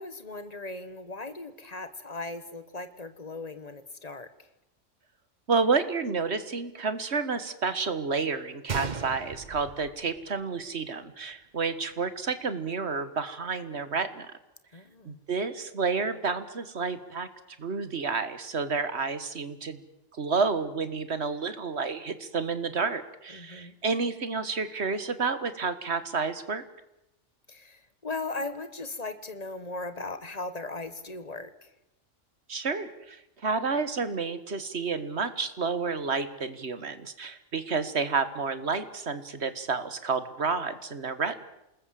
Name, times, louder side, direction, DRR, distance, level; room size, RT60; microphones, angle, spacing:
voice 1, 0.0-4.5 14.7-15.2 23.3-23.8 27.5-31.7, left 3 dB, 30° left, 11 dB, 1.7 m, -38 dB
voice 2, 5.5-14.3 15.1-17.3 17.6-19.8 20.1-26.6 32.5-41.4, right 4 dB, 60° right, 12 dB, 1.9 m, -30 dB
Gunshot gunfire, 8.7-10.7 11.0-11.1 11.8-12.0, right 5 dB, 40° right, 1.0 m, -37 dB
27.5 x 20.0 x 7.6 m, 0.88 s
omnidirectional pair, 1.3 m